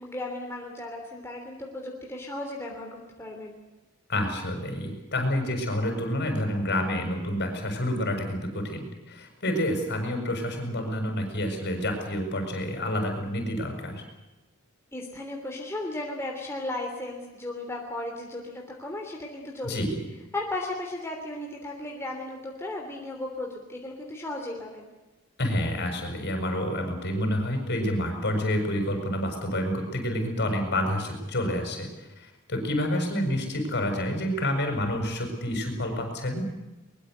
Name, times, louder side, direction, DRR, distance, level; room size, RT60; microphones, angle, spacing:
voice 1, 0.0-3.5 14.9-19.8 20.3-24.9, left 2 dB, 10° left, 0 dB, 3.2 m, -35 dB
voice 2, 4.1-14.0 19.6-20.0 25.4-36.5, left 1 dB, 50° left, 4 dB, 7.0 m, -28 dB
23.0 x 22.0 x 8.1 m, 1.1 s
head